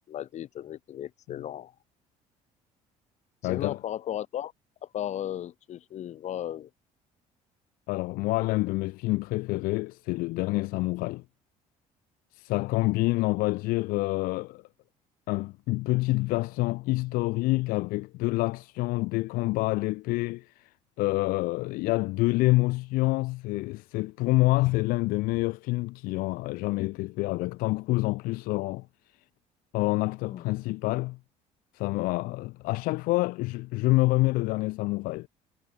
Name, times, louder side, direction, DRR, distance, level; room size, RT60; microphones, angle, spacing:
voice 1, 0.1-1.7 3.4-4.5 4.9-6.7 30.3-30.4, left 11 dB, 55° left, 6.7 m, -35 dB
voice 2, 3.4-3.8 7.9-11.2 12.3-14.6 15.3-20.7 21.0-28.9 29.7-31.2 31.7-35.3, left 21 dB, 85° left, 1.5 m, -27 dB
cardioid pair, 130°, 14 cm